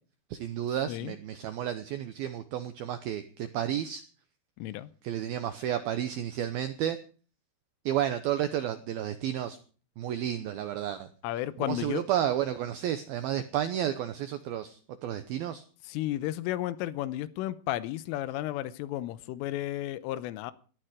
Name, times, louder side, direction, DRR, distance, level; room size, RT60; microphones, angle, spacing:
voice 1, 0.3-4.0 5.0-7.0 7.9-9.6 10.0-11.1 11.7-15.6, right 11 dB, 85° right, 2.1 m, -31 dB
voice 2, 4.6-4.9 11.2-12.0 15.9-20.5, left 14 dB, 90° left, 3.4 m, -33 dB
18.0 x 13.5 x 5.0 m
omnidirectional pair, 5.6 m